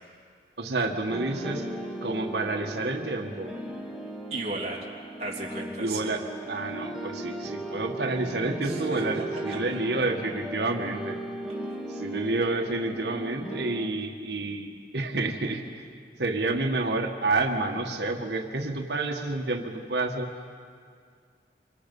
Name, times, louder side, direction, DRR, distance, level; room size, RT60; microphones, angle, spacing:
voice 1, 0.6-1.7 2.0-3.5 5.8-11.2 11.9-15.6 16.2-20.3, right 2 dB, 70° right, 3 dB, 1.6 m, -29 dB
sound 1, 1.1-13.9, right 1 dB, ahead, 2.1 m, -37 dB
voice 2, 4.3-4.9 5.2-6.1 8.6-9.8 11.6-12.0, right 2 dB, 35° right, -3 dB, 3.1 m, -36 dB
27.5 x 24.5 x 5.5 m, 2.1 s
head